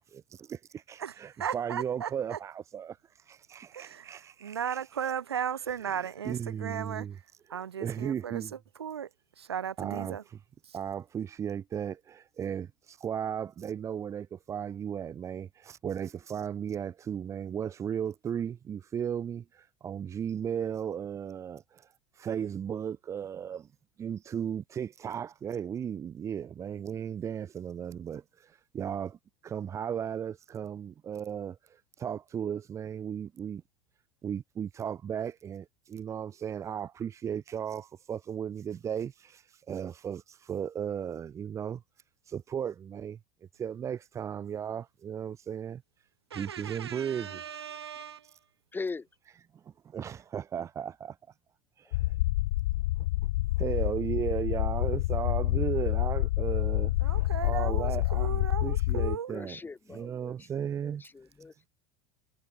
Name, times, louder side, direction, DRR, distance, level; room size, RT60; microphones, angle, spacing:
voice 1, 0.1-5.1 5.5-7.2 7.5-8.5 9.8-10.4 10.7-21.9 22.1-23.7 24.0-29.2 29.4-33.6 34.2-41.8 42.2-43.2 43.5-45.8 46.3-47.7 48.2-48.4 49.8-51.2 51.8-52.1 53.6-59.6 59.9-61.0, right 8 dB, 20° right, 0.5 m, -36 dB
voice 2, 1.0-2.4 3.7-4.1 4.4-7.1 7.5-8.4 8.8-9.1 9.4-10.2 10.7-10.8 46.3-48.3 57.0-59.3, right 8 dB, 75° right, 2.5 m, -36 dB
voice 3, 48.7-49.1 51.8-51.9 59.3-61.7, left 4 dB, 15° left, 3.0 m, -41 dB
sound 1, 51.9-59.2, left 18 dB, 60° left, 0.5 m, -28 dB
figure-of-eight pair, 80°, 14 cm